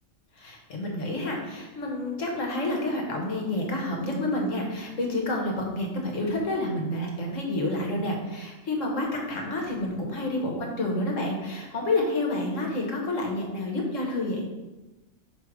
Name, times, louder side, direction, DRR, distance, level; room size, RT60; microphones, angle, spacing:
voice 1, 0.4-14.4, left 1 dB, 70° left, 0 dB, 1.5 m, -29 dB
6.3 x 3.2 x 4.7 m, 1.1 s
omnidirectional pair, 1.3 m